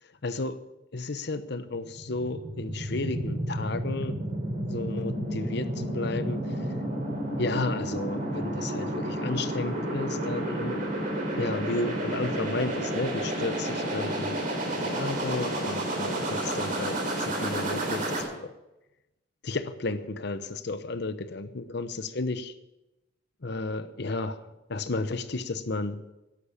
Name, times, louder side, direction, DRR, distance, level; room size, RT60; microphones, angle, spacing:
voice 1, 0.2-0.6 0.9-6.6 7.4-10.9 11.4-14.4 14.8-18.5 19.4-22.5 23.4-24.4 24.7-26.1, left 2 dB, 65° left, 0.9 m, -33 dB
sound 1, 1.7-18.2, right 1 dB, 50° right, 4.0 m, -31 dB
12.0 x 11.0 x 7.2 m
head